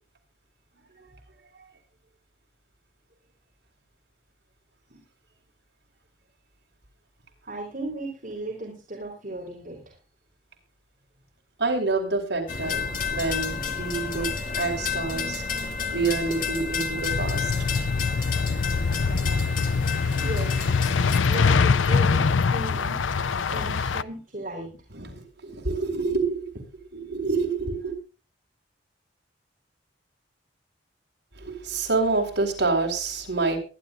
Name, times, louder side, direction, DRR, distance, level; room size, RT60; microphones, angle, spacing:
voice 1, 7.5-9.9 19.8-20.6 21.2-23.0 23.5-24.7, right 1 dB, 45° right, 0 dB, 3.7 m, -36 dB
voice 2, 11.6-12.8 13.1-14.3 14.6-15.4 15.9-17.5 18.1-18.3 23.2-23.3 24.9-26.7 26.9-27.9 31.3-33.6, right 3 dB, 65° right, 2 dB, 4.2 m, -27 dB
sound 1, 12.5-21.2, left 5 dB, 45° left, 2.5 m, -30 dB
sound 2, 17.1-24.0, left 5 dB, 90° left, 0.6 m, -24 dB
23.0 x 11.0 x 2.4 m, 0.35 s
head